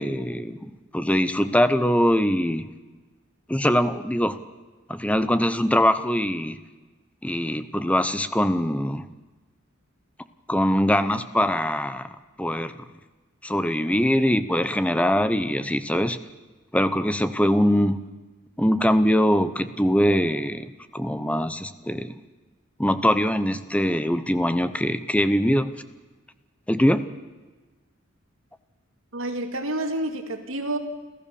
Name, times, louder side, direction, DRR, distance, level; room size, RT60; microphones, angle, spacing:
voice 1, 0.0-2.7 3.5-4.4 4.9-6.6 7.2-9.0 10.5-12.1 12.4-12.7 13.4-16.2 16.7-18.0 18.6-22.1 22.8-25.7 26.7-27.0, equal, 5° left, 12 dB, 0.8 m, -22 dB
voice 2, 29.1-30.8, right 1 dB, 80° right, 6 dB, 2.3 m, -29 dB
29.5 x 14.0 x 7.0 m, 1.3 s
head